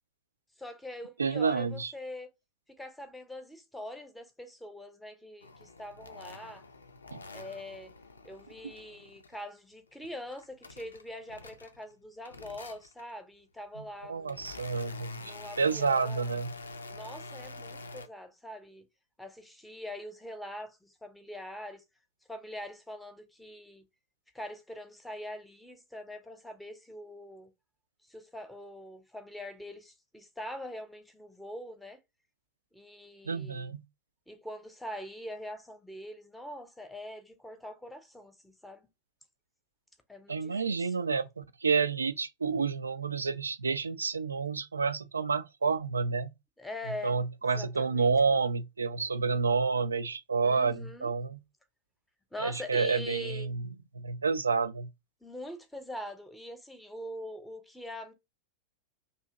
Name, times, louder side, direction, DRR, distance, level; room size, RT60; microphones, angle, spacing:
voice 1, 0.6-2.3 2.8-6.6 7.3-7.9 8.2-14.4 15.2-16.3 16.9-18.8 19.2-21.8 22.3-23.8 24.3-27.5 28.1-32.0 32.7-33.8 34.3-38.9 40.1-40.9 46.6-47.2 47.4-48.1 50.4-51.1 52.3-53.5 55.2-58.1, left 1 dB, 5° left, 0.7 m, -43 dB
voice 2, 1.2-1.9 7.1-7.2 13.8-16.5 33.3-33.8 40.3-46.3 47.0-51.4 52.4-53.7 53.9-54.9, right 5 dB, 75° right, 0.3 m, -29 dB
sound 1, 5.4-9.5 9.9-11.9 12.3-13.1 13.8-18.1, left 3 dB, 75° left, 0.4 m, -47 dB
2.8 x 2.7 x 3.8 m
figure-of-eight pair, 90°, 0 cm